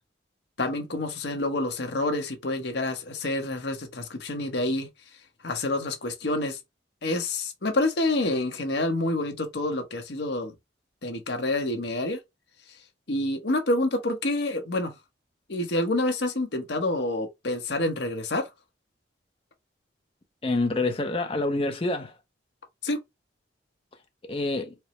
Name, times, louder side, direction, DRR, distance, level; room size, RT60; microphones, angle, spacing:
voice 1, 0.6-4.9 5.4-6.6 7.0-10.5 11.0-12.2 13.1-14.9 15.5-18.5 22.8-23.0, left 2 dB, 65° left, 0.9 m, -28 dB
voice 2, 20.4-22.1 24.3-24.7, left 2 dB, 30° left, 0.6 m, -27 dB
4.4 x 2.0 x 3.1 m
head